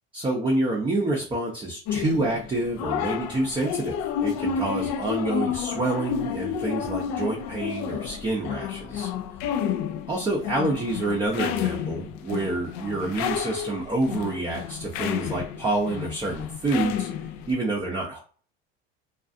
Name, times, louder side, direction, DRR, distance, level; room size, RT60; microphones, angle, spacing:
voice 1, 0.1-9.1 10.1-17.1 17.5-18.2, right 2 dB, 15° right, -2 dB, 0.6 m, -28 dB
sound 1, 1.9-17.5, left 8 dB, 65° left, 0.5 m, -31 dB
2.4 x 2.3 x 2.5 m, 0.42 s
supercardioid pair, 100°, 31 cm